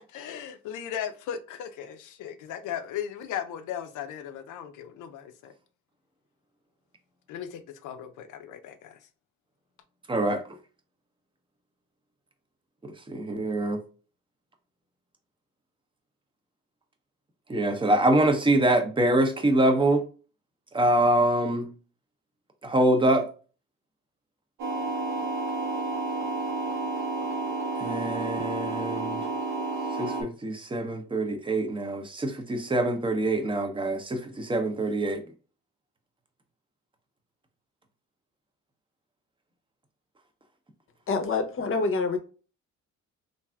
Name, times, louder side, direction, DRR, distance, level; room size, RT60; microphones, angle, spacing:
voice 1, 0.1-5.5 7.3-9.0, left 9 dB, 85° left, 0.5 m, -37 dB
voice 2, 10.1-10.4 13.1-13.8 17.5-20.0 20.7-21.7 22.6-23.3 27.8-29.2 30.0-35.2, right 1 dB, 15° right, 0.6 m, -24 dB
sound 1, 24.6-30.2, right 3 dB, 75° right, 0.9 m, -30 dB
voice 3, 41.1-42.2, left 4 dB, 45° left, 0.7 m, -26 dB
3.3 x 2.5 x 2.2 m
cardioid pair, 90°, 30 cm